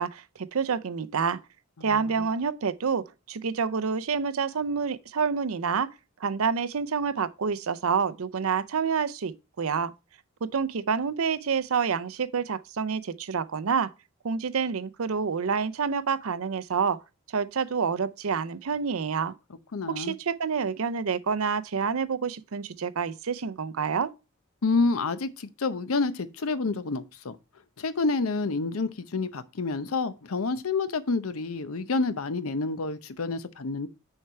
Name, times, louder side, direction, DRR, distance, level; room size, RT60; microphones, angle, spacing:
voice 1, 0.0-1.4 1.8-5.9 6.2-9.9 10.4-13.9 14.2-17.0 17.3-19.3 20.0-24.1, right 6 dB, 80° right, 0.6 m, -28 dB
voice 2, 1.8-2.2 19.7-20.1 24.6-27.4 27.8-33.9, left 3 dB, 85° left, 0.7 m, -28 dB
6.5 x 4.6 x 5.6 m
head